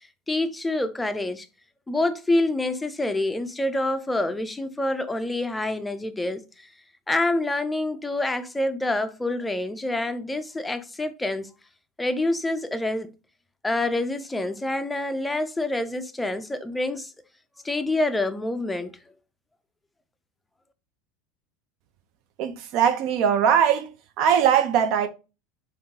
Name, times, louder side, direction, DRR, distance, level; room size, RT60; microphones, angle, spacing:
voice 1, 0.3-1.5 1.9-6.7 7.1-11.5 12.0-13.1 13.6-17.1 17.6-18.9, left 2 dB, 10° left, 0.4 m, -27 dB
voice 2, 22.4-23.9 24.2-25.1, right 8 dB, 55° right, 0.5 m, -20 dB
3.6 x 2.5 x 2.7 m
hypercardioid pair, 95°, 0 cm